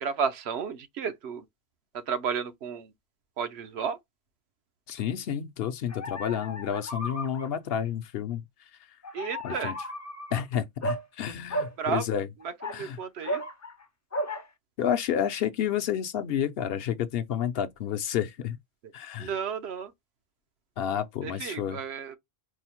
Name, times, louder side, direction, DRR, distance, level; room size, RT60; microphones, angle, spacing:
voice 1, 0.0-1.4 2.1-2.9 3.4-4.0 9.1-9.7 11.8-12.0 12.7-13.4 19.2-19.9 21.2-22.1, right 6 dB, 85° right, 0.9 m, -32 dB
voice 2, 4.9-8.4 9.4-9.7 10.3-12.3 12.7-13.0 14.8-18.6 18.9-19.3 20.8-21.8, left 9 dB, 70° left, 0.8 m, -30 dB
sound 1, 5.9-7.5 9.0-10.4 10.8-11.0 11.5-11.7 12.4-13.8 14.1-14.5, equal, 25° left, 0.4 m, -34 dB
4.7 x 2.0 x 2.9 m
omnidirectional pair, 1.1 m